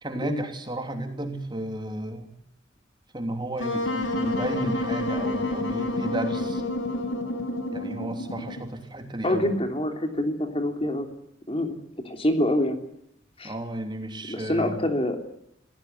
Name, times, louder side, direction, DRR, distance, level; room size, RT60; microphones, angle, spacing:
voice 1, 0.0-2.3 3.1-6.6 7.7-9.5 13.4-14.8, right 1 dB, 25° right, 5 dB, 3.2 m, -33 dB
Wind instrument woodwind instrument, 3.6-8.7, left 1 dB, 80° left, 5.4 m, -29 dB
voice 2, 9.2-11.1 11.5-11.8 12.0-12.8 13.4-13.5 14.3-15.2, left 1 dB, 30° left, 5 dB, 3.2 m, -26 dB
26.0 x 17.5 x 9.6 m, 0.74 s
head